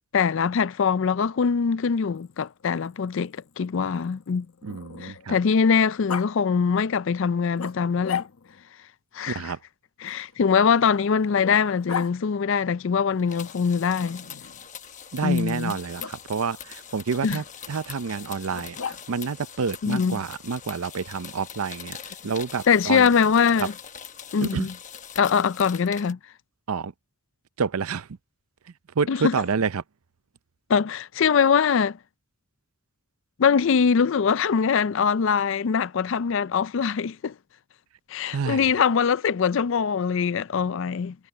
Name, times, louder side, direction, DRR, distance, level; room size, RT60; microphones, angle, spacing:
voice 1, 0.1-4.5 5.0-8.2 9.1-9.5 10.0-14.2 15.2-15.7 17.2-17.4 19.8-20.2 22.7-23.7 24.3-24.7 25.2-26.2 29.1-29.3 30.7-32.0 33.4-37.3 38.1-41.2, left 6 dB, 60° left, 0.4 m, -22 dB
Growling, 2.0-5.4 6.1-6.3 7.6-8.7 10.0-12.1 14.0-14.7 16.0-16.2 18.5-19.3, left 7 dB, 90° left, 1.1 m, -37 dB
voice 2, 4.6-5.4 9.3-9.6 15.1-23.1 24.4-24.7 26.7-26.9 27.6-28.1 29.0-29.8 38.3-38.6, right 5 dB, 90° right, 0.6 m, -28 dB
sound 1, 13.2-26.1, left 8 dB, 35° left, 1.1 m, -42 dB
head